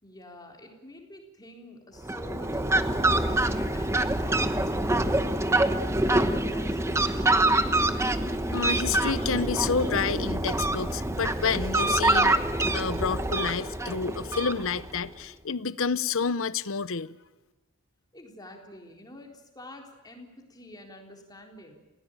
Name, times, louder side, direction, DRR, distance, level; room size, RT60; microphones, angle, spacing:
voice 1, 0.0-7.4 18.1-21.7, left 1 dB, 20° left, 3.8 m, -47 dB
Fowl, 2.0-15.0, right 2 dB, 10° right, 1.0 m, -26 dB
voice 2, 8.5-12.4 12.7-17.2, left 5 dB, 60° left, 0.8 m, -29 dB
29.5 x 16.5 x 9.0 m
head